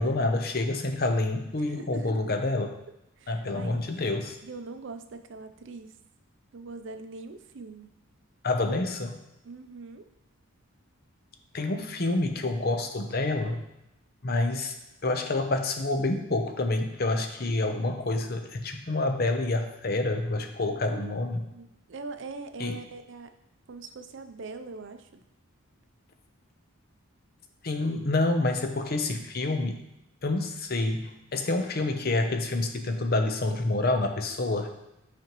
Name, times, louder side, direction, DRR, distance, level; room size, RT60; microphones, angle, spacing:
voice 1, 0.0-2.7 3.3-4.4 8.4-9.2 11.5-13.6 14.2-14.7 15.0-21.4 22.6-22.8 27.6-29.8 30.2-34.7, left 2 dB, 45° left, 6 dB, 0.7 m, -28 dB
voice 2, 1.6-2.2 3.2-3.8 4.4-5.9 6.5-7.9 9.4-10.1 20.9-21.2 21.5-23.3 23.7-25.3, right 3 dB, 60° right, 8 dB, 0.5 m, -42 dB
8.5 x 5.1 x 3.0 m, 0.90 s
head